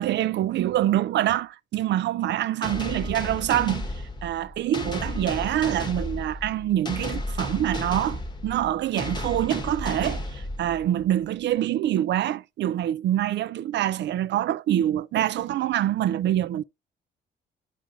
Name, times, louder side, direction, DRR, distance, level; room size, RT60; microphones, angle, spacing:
voice 1, 0.0-16.6, right 12 dB, 65° right, 0.4 m, -25 dB
sound 1, 2.6-11.1, left 1 dB, 20° left, 1.0 m, -33 dB
9.3 x 5.1 x 2.7 m
cardioid pair, 90°, 20 cm